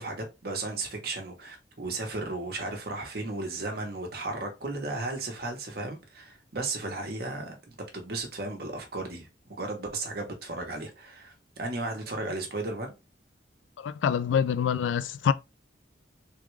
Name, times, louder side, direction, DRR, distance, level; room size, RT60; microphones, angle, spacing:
voice 1, 0.0-12.9, right 2 dB, 55° right, 1.0 m, -35 dB
voice 2, 13.8-15.3, left 7 dB, 85° left, 0.3 m, -26 dB
3.5 x 2.3 x 3.1 m
head